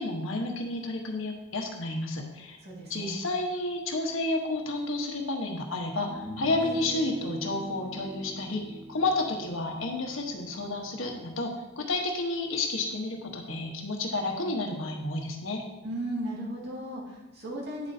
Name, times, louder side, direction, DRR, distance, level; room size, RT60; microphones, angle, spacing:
voice 1, 0.0-2.6 2.9-15.6, left 2 dB, 70° left, 1 dB, 1.3 m, -31 dB
voice 2, 2.6-3.2 15.8-17.9, right 1 dB, 55° right, -4 dB, 2.3 m, -36 dB
sound 1, 4.9-5.0 6.0-11.3, equal, 5° right, 1.9 m, -42 dB
9.4 x 7.6 x 2.8 m, 1.0 s
head